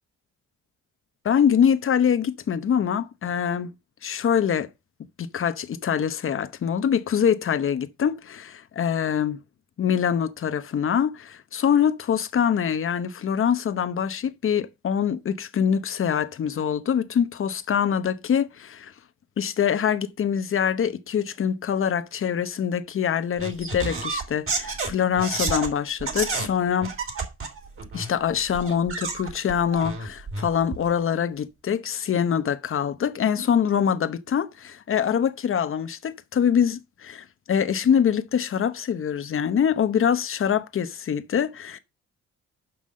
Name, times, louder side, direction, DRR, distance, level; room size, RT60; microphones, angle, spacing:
voice 1, 1.2-3.7 4.0-4.7 5.2-9.4 9.8-18.9 19.4-26.9 27.9-41.8, left 8 dB, 45° left, 0.9 m, -24 dB
sound 1, 23.4-25.7 26.0-26.5 26.8-28.1 28.5-30.9, right 4 dB, 45° right, 3.5 m, -30 dB
6.0 x 5.6 x 6.3 m
cardioid pair, 90°, 30 cm